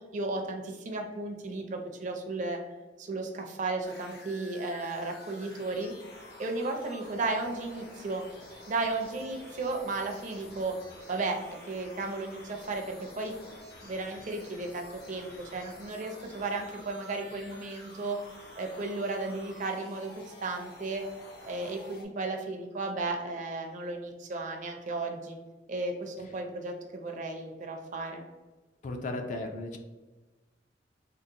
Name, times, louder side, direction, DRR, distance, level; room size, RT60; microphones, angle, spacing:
voice 1, 0.1-2.6 3.0-5.9 6.4-8.2 8.7-10.7 11.1-13.3 13.8-18.2 18.6-21.0 21.5-25.4 25.7-28.2, right 3 dB, 45° right, 3 dB, 0.4 m, -34 dB
sound 1, 3.8-22.1, left 1 dB, 60° left, 0.9 m, -50 dB
voice 2, 28.8-29.8, left 2 dB, 45° left, 5 dB, 0.3 m, -35 dB
3.7 x 2.1 x 2.7 m, 1.2 s
head